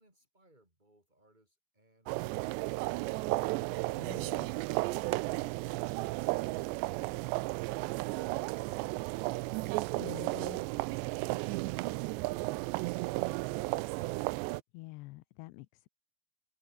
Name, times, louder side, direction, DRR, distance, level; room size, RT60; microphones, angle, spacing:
voice 1, 0.0-3.7, right 1 dB, 10° right, 7.5 m, -67 dB
sound 1, 2.1-14.6, right 22 dB, 85° right, 2.8 m, -34 dB
voice 2, 4.0-4.6 9.9-10.6 14.7-15.9, left 21 dB, 80° left, 2.8 m, -47 dB
open air
omnidirectional pair, 5.0 m